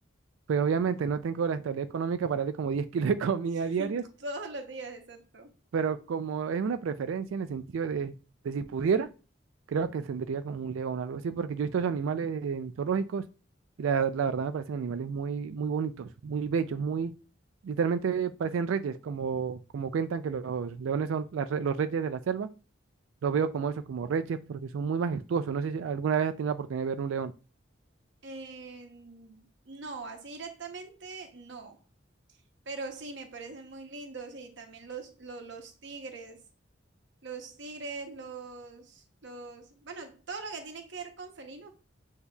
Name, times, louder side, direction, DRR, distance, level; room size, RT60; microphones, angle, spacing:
voice 1, 0.5-4.0 5.7-8.1 8.4-9.1 9.7-13.2 13.8-17.1 17.6-22.5 23.2-27.3, right 6 dB, 85° right, 0.4 m, -30 dB
voice 2, 3.6-5.5 28.2-31.8 32.7-36.4 37.2-41.7, right 3 dB, 65° right, 0.8 m, -42 dB
7.9 x 2.7 x 2.3 m
head